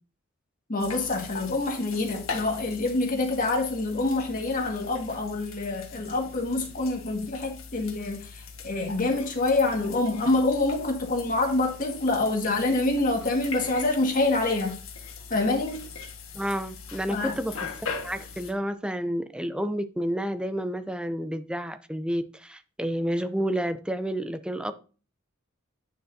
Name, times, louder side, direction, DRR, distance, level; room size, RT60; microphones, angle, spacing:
voice 1, 0.7-14.7 15.3-15.8 17.1-17.3, left 2 dB, 40° left, 1.7 m, -26 dB
sound 1, 0.8-18.5, left 5 dB, 80° left, 1.6 m, -41 dB
voice 2, 16.3-17.6 18.0-24.7, equal, 5° right, 0.4 m, -30 dB
9.2 x 6.4 x 2.7 m
head